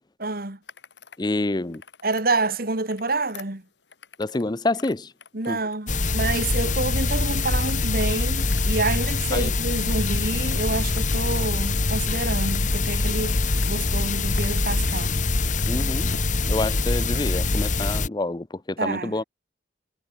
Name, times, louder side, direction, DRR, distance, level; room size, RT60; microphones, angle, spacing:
voice 1, 0.2-0.6 2.0-3.6 5.3-13.4 13.7-15.2 18.8-19.1, right 3 dB, 55° right, 2.4 m, -28 dB
sound 1, 0.6-1.2 1.6-2.3 2.7-4.5 4.7-5.9 6.3-7.0 7.3-11.5 11.8-13.7 14.1-14.9 15.2-16.3, left 6 dB, 75° left, 2.9 m, -46 dB
voice 2, 1.2-1.8 4.2-5.1 5.5-5.6 9.3-9.5 15.7-16.1 16.5-19.2, left 2 dB, 25° left, 0.6 m, -27 dB
sound 2, 5.9-18.1, left 3 dB, 45° left, 1.4 m, -24 dB
head